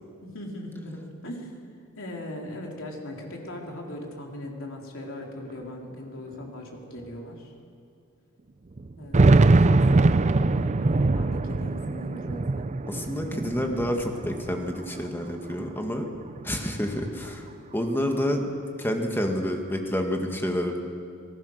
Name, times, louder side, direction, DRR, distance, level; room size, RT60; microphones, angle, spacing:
voice 1, 0.2-1.5 2.0-7.5 9.0-12.7 13.0-13.4, left 1 dB, 60° left, 0 dB, 3.6 m, -39 dB
sound 1, 5.2-5.3 5.5-5.6 6.5-6.6 7.0-7.1 8.8-15.2 15.6-16.5, right 2 dB, 30° right, 0.5 m, -22 dB
voice 2, 12.9-16.1 16.4-17.5 17.7-18.5 18.8-20.8, equal, 10° left, 3 dB, 1.7 m, -28 dB
26.0 x 19.5 x 6.5 m, 2.3 s
head